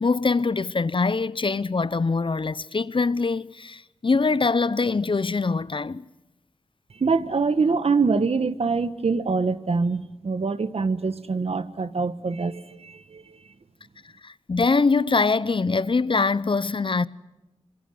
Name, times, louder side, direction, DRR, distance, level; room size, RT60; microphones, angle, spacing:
voice 1, 0.0-6.0 14.2-17.1, left 4 dB, 50° left, 0.8 m, -23 dB
voice 2, 6.9-13.4, right 4 dB, 65° right, 1.4 m, -24 dB
26.0 x 21.5 x 7.8 m
cardioid pair, 50°, 11 cm